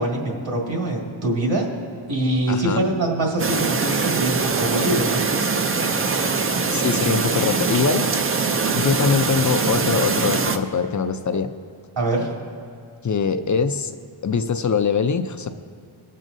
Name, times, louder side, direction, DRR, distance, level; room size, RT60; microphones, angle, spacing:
voice 1, 0.0-1.7 2.1-5.5 12.0-12.3, right 1 dB, 60° right, -1 dB, 2.1 m, -24 dB
voice 2, 2.5-2.8 6.7-8.1 8.7-11.5 13.0-14.0 14.2-15.6, left 5 dB, 40° left, 9 dB, 0.5 m, -22 dB
Chirp tweet, 3.4-10.6, right 4 dB, 30° right, 0.4 m, -22 dB
22.0 x 7.5 x 2.7 m, 2.3 s
wide cardioid pair, 120°, 50 cm